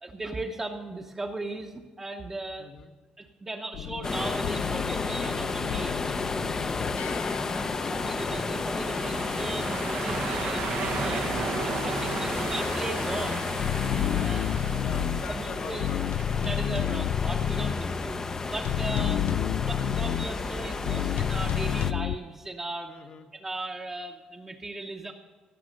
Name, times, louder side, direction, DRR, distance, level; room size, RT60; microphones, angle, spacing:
voice 1, 0.0-2.7 3.2-6.2 7.9-10.6 11.0-11.3 11.6-13.5 14.1-14.5 14.9-15.0 15.3-15.9 16.4-18.2 18.5-19.2 19.6-22.9 23.4-25.1, right 2 dB, 15° right, 0 dB, 0.8 m, -37 dB
voice 2, 2.6-2.9 6.5-8.1 10.1-10.3 14.1-16.0 16.8-17.0 18.8-19.1 22.9-23.3, left 6 dB, 50° left, 6 dB, 1.2 m, -44 dB
sound 1, 3.7-8.7 11.4-11.5 11.7-11.8 13.6-15.2 15.8-17.8 18.6-20.3 20.9-22.2, left 11 dB, 85° left, 0.3 m, -30 dB
sound 2, 4.0-21.9, left 3 dB, 25° left, 0.6 m, -31 dB
sound 3, 4.9-21.5, right 8 dB, 85° right, 0.9 m, -39 dB
17.0 x 6.3 x 6.5 m, 1.4 s
cardioid pair, 150°, 2 cm